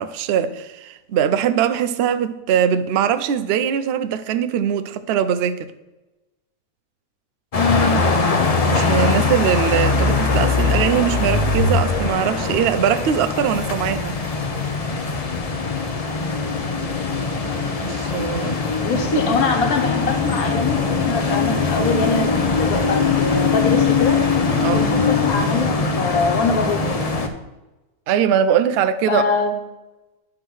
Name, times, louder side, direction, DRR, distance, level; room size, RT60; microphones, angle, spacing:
voice 1, 0.0-5.7 8.6-14.2 14.6-14.7 17.8-18.6 24.6-24.9 28.1-29.2, right 9 dB, 65° right, 0.6 m, -21 dB
voice 2, 7.5-8.1 18.8-24.2 24.7-26.8 29.1-29.5, left 4 dB, 70° left, 1.5 m, -23 dB
sound 1, 7.5-27.3, left 4 dB, 45° left, 0.5 m, -21 dB
9.8 x 3.7 x 6.2 m
omnidirectional pair, 1.6 m